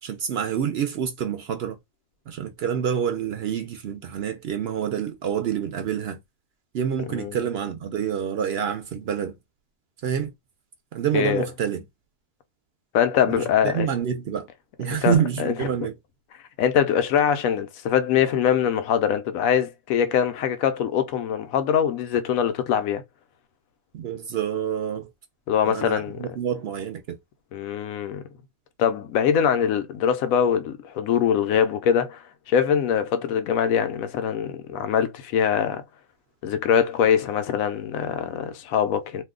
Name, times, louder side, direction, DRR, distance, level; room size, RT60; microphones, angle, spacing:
voice 1, 0.0-1.8 2.3-6.2 6.7-9.4 10.0-10.3 10.9-11.8 13.3-14.5 14.8-15.9 23.9-25.1 25.6-27.2, right 8 dB, 65° right, 0.6 m, -27 dB
voice 2, 11.1-11.4 12.9-13.9 15.0-15.1 15.4-15.5 16.6-23.0 25.5-26.2 27.5-28.2 28.8-35.8 36.4-39.2, left 8 dB, 90° left, 1.0 m, -23 dB
2.7 x 2.2 x 3.6 m
omnidirectional pair, 1.4 m